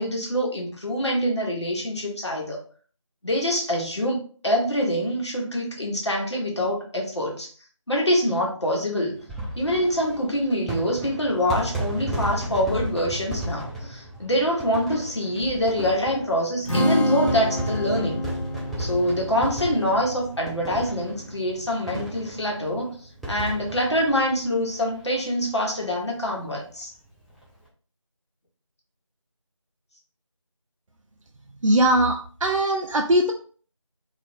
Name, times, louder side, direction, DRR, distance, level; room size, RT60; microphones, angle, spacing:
voice 1, 0.0-2.6 3.2-4.2 4.4-7.5 7.9-9.2 9.6-18.3 18.8-22.9 23.3-26.9, equal, 55° left, -2 dB, 0.9 m, -25 dB
sound 1, 9.2-25.2 25.5-25.6 25.8-25.9 27.2-27.4, right 1 dB, ahead, 0.3 m, -34 dB
Strum, 16.7-22.9, equal, 85° left, 0.8 m, -29 dB
voice 2, 31.6-33.3, right 1 dB, 80° right, 2 dB, 0.4 m, -20 dB
2.4 x 2.0 x 2.5 m, 0.42 s
figure-of-eight pair, 175°, 17 cm